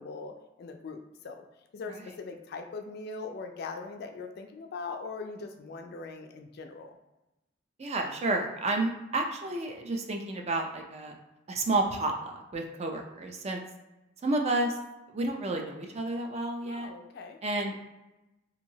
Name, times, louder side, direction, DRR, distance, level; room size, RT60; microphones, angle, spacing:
voice 1, 0.0-1.4 1.7-7.0 16.6-17.4, left 4 dB, 55° left, 5 dB, 0.4 m, -41 dB
voice 2, 7.8-11.1 11.5-13.6 14.2-14.8 15.1-16.9 17.4-17.9, right 2 dB, 35° right, 3 dB, 0.4 m, -31 dB
2.9 x 2.7 x 2.7 m, 0.98 s
head